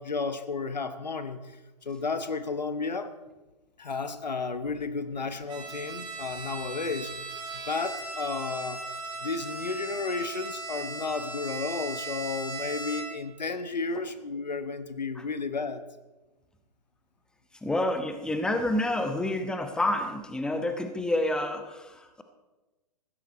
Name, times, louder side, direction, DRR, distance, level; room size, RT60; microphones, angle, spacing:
voice 1, 0.0-3.1 3.8-7.3 7.7-8.8 9.2-15.8, left 4 dB, 85° left, 11 dB, 1.1 m, -33 dB
Bowed string instrument, 5.5-13.3, right 3 dB, 20° right, 3.3 m, -38 dB
voice 2, 17.6-22.2, left 1 dB, 5° left, 7 dB, 1.0 m, -28 dB
15.5 x 13.0 x 4.2 m, 1.1 s
figure-of-eight pair, 120°, 21 cm